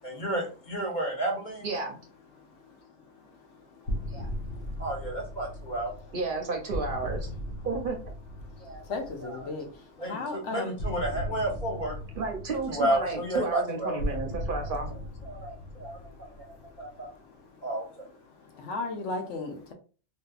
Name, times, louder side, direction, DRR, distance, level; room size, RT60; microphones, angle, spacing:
voice 1, 0.0-1.7 4.1-4.3 4.8-5.9 8.6-8.9 9.2-9.6 10.0-12.0 12.7-14.0 14.6-17.1 17.6-18.1, right 1 dB, 45° left, 1.3 m, -32 dB
voice 2, 1.6-2.0 6.1-7.3 7.6-8.0 12.2-14.9, right 3 dB, 55° right, 0.7 m, -31 dB
sound 1, 3.9-9.6 10.8-17.1, equal, 60° left, 0.9 m, -37 dB
voice 3, 8.9-9.7 10.1-10.7 18.6-19.7, left 3 dB, 85° left, 1.1 m, -34 dB
3.5 x 2.6 x 2.4 m
omnidirectional pair, 1.2 m